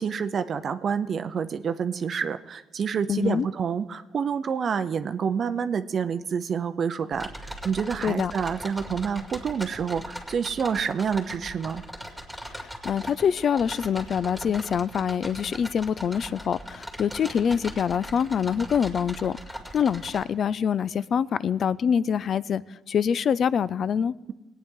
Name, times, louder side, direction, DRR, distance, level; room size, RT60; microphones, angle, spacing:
voice 1, 0.0-11.8, right 6 dB, 55° right, 0.5 m, -28 dB
voice 2, 3.1-3.5 8.0-8.3 12.5-19.4 19.7-22.6 22.9-24.1, left 7 dB, 55° left, 0.3 m, -25 dB
sound 1, 7.1-20.2, equal, 5° left, 2.2 m, -40 dB
20.5 x 9.1 x 3.7 m
cardioid pair, 90°, 0 cm